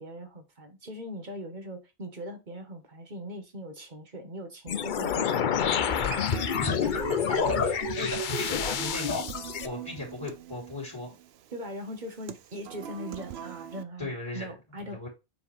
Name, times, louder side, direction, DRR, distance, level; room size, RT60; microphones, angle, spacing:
voice 1, 0.0-6.5 11.5-15.0, equal, 45° right, 1.6 m, -41 dB
sound 1, 4.7-9.7, left 8 dB, 55° left, 0.7 m, -28 dB
Human voice / Acoustic guitar, 5.8-13.8, right 9 dB, 70° right, 0.8 m, -39 dB
voice 2, 6.6-9.2 9.6-11.1 14.0-14.5 14.9-15.1, left 2 dB, 25° left, 2.9 m, -37 dB
7.3 x 4.7 x 3.4 m
omnidirectional pair, 1.1 m